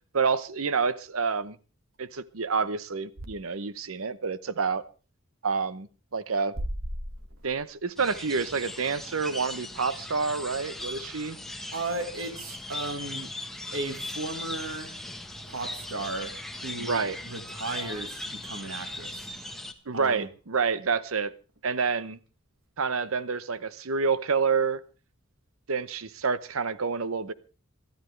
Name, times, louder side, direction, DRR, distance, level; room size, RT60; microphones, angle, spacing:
voice 1, 0.1-1.6 2.0-4.8 5.4-6.5 7.4-11.4 16.8-17.2 19.9-21.3 21.6-22.2 22.8-24.8 25.7-27.3, right 5 dB, 85° right, 0.9 m, -28 dB
sound 1, 8.0-19.7, left 1 dB, ahead, 1.2 m, -39 dB
voice 2, 11.7-13.3 13.7-15.0 15.5-19.3 19.9-20.3, right 2 dB, 70° right, 1.7 m, -35 dB
25.0 x 13.0 x 3.3 m
head